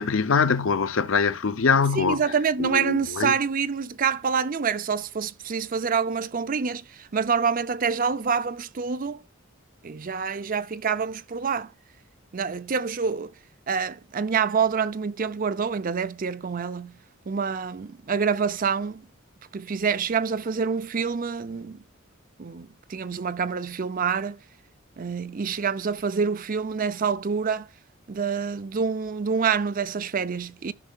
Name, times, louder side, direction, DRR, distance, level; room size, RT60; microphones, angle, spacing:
voice 1, 0.0-2.2 2.6-3.3, left 5 dB, 70° left, 0.6 m, -23 dB
voice 2, 2.0-9.2 9.8-11.7 12.3-13.3 13.7-16.9 17.3-19.0 19.5-21.8 22.4-24.4 25.0-27.7 28.1-30.7, right 6 dB, 40° right, 0.5 m, -27 dB
14.0 x 5.4 x 2.3 m
head